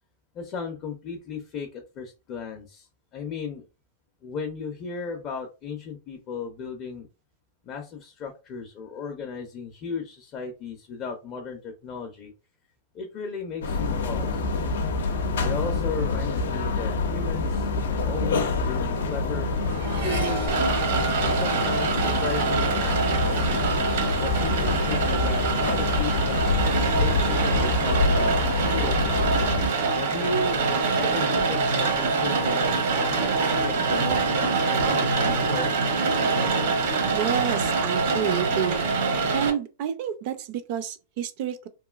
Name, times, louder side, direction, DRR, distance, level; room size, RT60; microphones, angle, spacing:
voice 1, 0.3-2.9 3.1-3.6 4.2-7.1 7.6-12.3 12.9-14.5 15.4-19.5 20.0-20.5 21.2-23.0 24.2-29.0 30.0-30.6 30.9-35.9, left 5 dB, 30° left, 0.4 m, -35 dB
sound 1, 13.6-29.7, left 3 dB, 90° left, 0.5 m, -26 dB
Accelerating revving vroom, 17.5-25.0 25.3-25.9, right 2 dB, 85° right, 1.7 m, -38 dB
Rain, 20.5-39.5, right 4 dB, 60° right, 0.9 m, -25 dB
voice 2, 37.1-38.8 39.3-41.7, right 9 dB, 40° right, 0.4 m, -29 dB
2.9 x 2.6 x 2.3 m
supercardioid pair, 165°, 0 cm